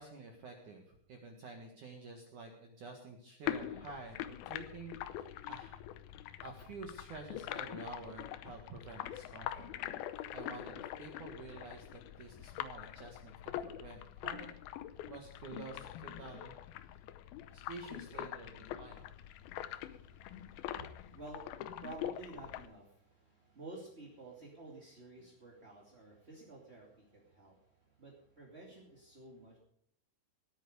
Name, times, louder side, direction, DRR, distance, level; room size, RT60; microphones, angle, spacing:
voice 1, 0.0-5.8 6.4-9.7 10.3-11.9 12.2-14.5 15.1-16.5 16.9-17.0 17.5-19.0, right 3 dB, 55° right, 2 dB, 2.5 m, -49 dB
sound 1, 3.4-22.7, left 12 dB, 85° left, 2.1 m, -44 dB
voice 2, 18.9-29.6, right 2 dB, 20° right, -3 dB, 1.6 m, -52 dB
19.5 x 9.3 x 5.0 m, 0.70 s
omnidirectional pair, 5.4 m